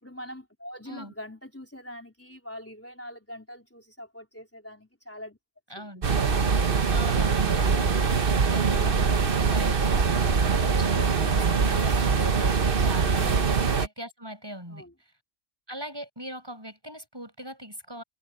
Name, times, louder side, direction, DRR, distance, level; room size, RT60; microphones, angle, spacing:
voice 1, 0.0-5.4 5.7-6.1 13.2-13.5 14.7-14.9, left 1 dB, 10° left, 4.0 m, -43 dB
voice 2, 5.7-6.1 6.9-13.4 13.8-14.8 15.7-18.0, equal, 20° right, 7.3 m, -41 dB
sound 1, 6.0-13.9, right 5 dB, 55° right, 1.3 m, -23 dB
omnidirectional pair, 1.1 m